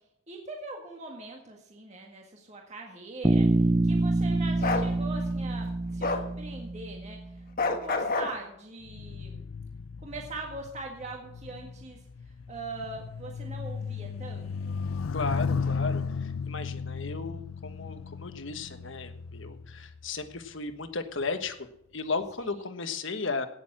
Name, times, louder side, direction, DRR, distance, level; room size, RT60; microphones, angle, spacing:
voice 1, 0.3-9.4 10.0-12.0 12.5-14.8 22.4-22.5, right 3 dB, 35° right, 0 dB, 1.8 m, -42 dB
Bass guitar, 3.2-7.3, right 2 dB, 15° right, 0.5 m, -26 dB
Bark, 4.6-4.9 6.0-6.3 7.6-8.3, left 3 dB, 45° left, 1.4 m, -27 dB
sound 1, 8.8-20.5 21.2-21.5, left 5 dB, 85° left, 0.5 m, -35 dB
voice 2, 15.1-21.7 21.9-23.5, left 4 dB, 65° left, 9 dB, 1.3 m, -35 dB
17.5 x 7.0 x 6.1 m, 0.76 s
head